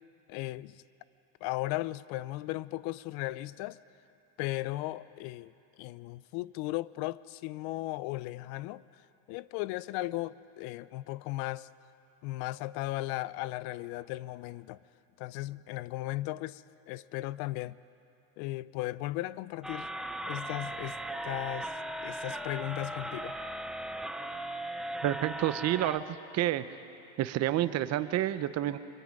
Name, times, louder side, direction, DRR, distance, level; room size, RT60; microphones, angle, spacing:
voice 1, 0.3-0.8 1.4-3.8 4.4-5.5 5.8-8.8 9.3-11.7 12.2-14.8 15.2-17.8 18.4-19.9 20.3-21.0 21.2-21.7 22.0-23.3, left 18 dB, 55° left, 19 dB, 0.5 m, -36 dB
sound 1, 19.6-26.0, right 1 dB, ahead, 0.4 m, -38 dB
voice 2, 25.0-26.6 27.2-28.8, right 13 dB, 35° right, 12 dB, 0.7 m, -29 dB
24.0 x 23.0 x 5.3 m, 2.8 s
supercardioid pair, 135°, 47 cm